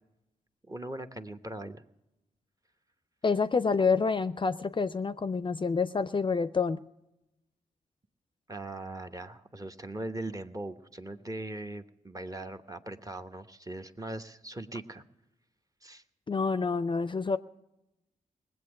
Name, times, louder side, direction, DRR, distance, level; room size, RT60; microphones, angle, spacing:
voice 1, 0.7-1.8 8.5-15.0 15.8-16.0, right 2 dB, 25° right, 7 dB, 1.0 m, -40 dB
voice 2, 3.2-6.8 16.3-17.4, left 4 dB, 35° left, 13 dB, 0.5 m, -28 dB
19.0 x 7.9 x 6.2 m, 0.93 s
supercardioid pair, 40°, 15 cm